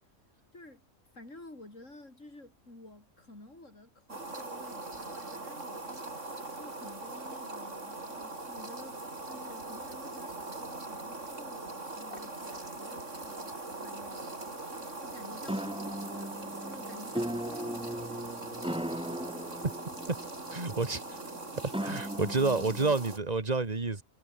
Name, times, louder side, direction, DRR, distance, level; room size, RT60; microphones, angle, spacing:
voice 1, 1.1-18.7 21.1-21.4, left 2 dB, 80° left, 6.9 m, -52 dB
sound 1, 4.1-23.2, right 2 dB, 70° right, 4.6 m, -41 dB
sound 2, 4.7-13.1, left 1 dB, 45° left, 5.4 m, -61 dB
sound 3, 15.5-22.9, equal, 5° right, 1.7 m, -38 dB
voice 2, 20.5-21.2 21.8-24.0, right 3 dB, 35° right, 2.0 m, -29 dB
omnidirectional pair, 1.3 m